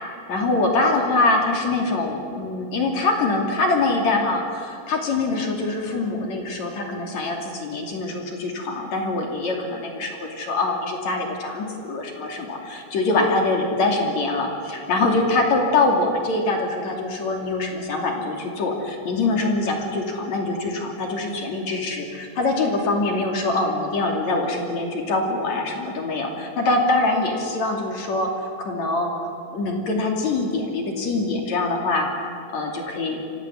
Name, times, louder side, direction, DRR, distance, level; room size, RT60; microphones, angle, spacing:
voice 1, 0.3-33.2, left 2 dB, 45° left, 1 dB, 3.4 m, -24 dB
26.0 x 15.0 x 9.8 m, 2.4 s
omnidirectional pair, 5.4 m